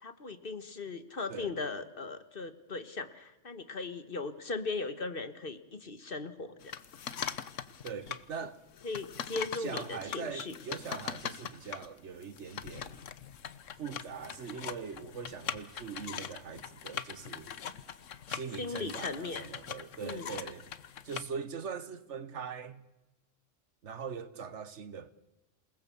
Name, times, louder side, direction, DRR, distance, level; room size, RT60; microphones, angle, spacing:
voice 1, 0.0-6.7 8.8-10.5 18.6-19.5 20.0-20.3, left 3 dB, 45° left, 1.6 m, -38 dB
sound 1, 6.6-8.2 8.7-21.2, left 8 dB, 80° left, 1.3 m, -42 dB
voice 2, 7.8-8.6 9.5-13.0 13.8-17.5 18.3-20.7 21.0-22.8 23.8-25.1, right 6 dB, 65° right, 1.4 m, -42 dB
28.0 x 19.0 x 7.1 m
omnidirectional pair, 1.3 m